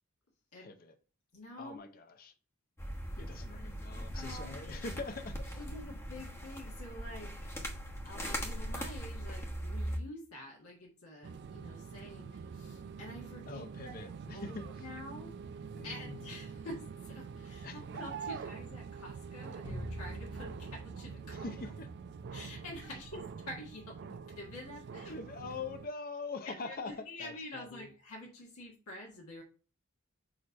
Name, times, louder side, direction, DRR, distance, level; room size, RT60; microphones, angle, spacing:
voice 1, 0.5-1.0 1.6-2.3 3.2-5.6 13.5-14.9 15.7-16.3 17.6-18.0 21.3-21.9 25.1-27.9, left 3 dB, 40° left, 0.7 m, -44 dB
voice 2, 1.3-1.9 4.1-4.9 5.6-7.3 8.0-15.3 15.8-21.4 22.3-25.1 26.4-29.4, left 1 dB, 75° left, 1.6 m, -48 dB
sound 1, 2.8-10.0, equal, 10° left, 1.1 m, -40 dB
sound 2, 11.2-25.9, right 6 dB, 50° right, 0.3 m, -45 dB
sound 3, 19.6-24.7, right 1 dB, 20° right, 1.5 m, -47 dB
6.4 x 3.1 x 5.2 m
head